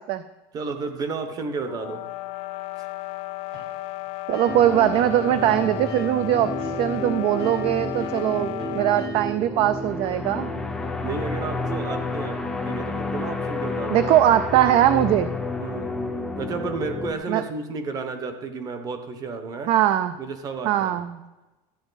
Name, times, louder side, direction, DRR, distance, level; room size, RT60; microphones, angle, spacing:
voice 1, 0.5-2.0 11.0-14.1 15.6-15.9 16.4-19.7 20.2-21.0, right 4 dB, 25° right, 7 dB, 1.0 m, -32 dB
sound 1, 1.6-9.2, left 20 dB, 50° left, 0.4 m, -34 dB
sound 2, 3.5-5.2 5.4-9.5, right 3 dB, 60° right, 3.7 m, -46 dB
voice 2, 4.3-10.5 13.9-15.3 17.3-17.4 19.7-20.2 20.6-21.1, right 12 dB, 40° right, 12 dB, 0.4 m, -21 dB
sound 3, 4.5-17.1, left 2 dB, 5° left, 0.6 m, -30 dB
13.0 x 8.9 x 4.0 m, 1.1 s
cardioid pair, 170°, 14 cm